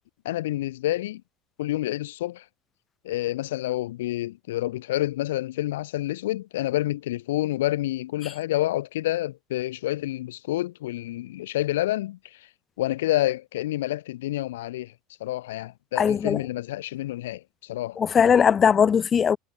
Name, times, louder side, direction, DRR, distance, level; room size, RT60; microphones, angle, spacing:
voice 1, 0.2-1.2 1.6-2.4 3.0-12.4 12.8-14.9 15.2-18.0, left 15 dB, 70° left, 0.7 m, -28 dB
voice 2, 16.0-16.4 18.0-19.4, left 7 dB, 30° left, 0.6 m, -19 dB
figure-of-eight pair, 70°, 0 cm